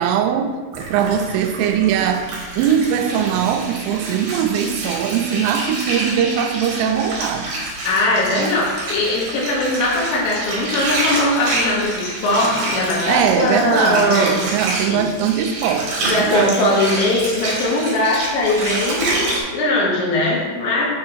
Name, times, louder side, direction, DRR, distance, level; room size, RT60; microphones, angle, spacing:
voice 1, 0.0-7.5 8.4-8.5 13.1-16.6, right 8 dB, 85° right, 6 dB, 3.0 m, -21 dB
Water, 0.7-19.4, right 2 dB, 65° right, 2.4 m, -27 dB
voice 2, 7.8-14.4 14.9-15.0 16.0-19.1 19.5-20.8, left 1 dB, 75° left, -5 dB, 3.1 m, -20 dB
7.6 x 2.9 x 4.5 m, 1.4 s
omnidirectional pair, 5.8 m